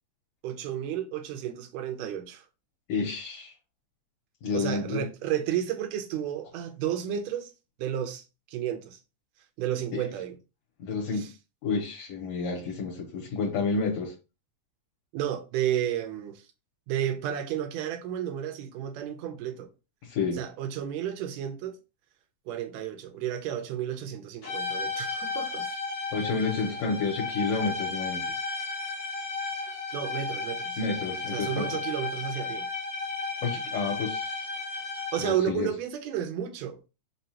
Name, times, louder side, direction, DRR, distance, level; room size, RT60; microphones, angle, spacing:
voice 1, 0.4-2.4 4.5-7.5 7.8-8.2 8.5-9.0 9.6-10.4 11.1-11.3 15.1-16.4 16.9-19.7 20.3-21.8 22.5-25.7 29.9-30.8 31.3-32.7 35.1-36.8, right 10 dB, 80° right, 1.8 m, -32 dB
voice 2, 2.9-3.5 4.4-5.0 9.9-10.0 10.8-11.3 11.6-14.1 20.0-20.4 26.1-28.3 30.8-31.7 33.4-34.3 35.2-35.7, left 4 dB, 70° left, 2.1 m, -30 dB
sound 1, 24.4-35.5, left 4 dB, 55° left, 1.0 m, -34 dB
5.1 x 2.3 x 2.8 m
omnidirectional pair, 3.4 m